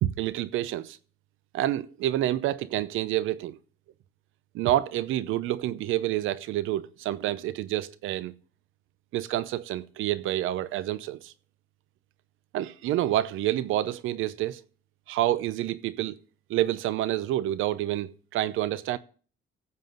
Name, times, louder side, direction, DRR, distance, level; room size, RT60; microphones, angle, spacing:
voice 1, 0.0-1.0 1.5-3.6 4.5-8.3 9.1-11.3 12.5-14.6 15.1-16.2 16.5-19.0, right 14 dB, 90° right, 0.7 m, -28 dB
15.5 x 7.5 x 3.9 m
cardioid pair, 90°, 20 cm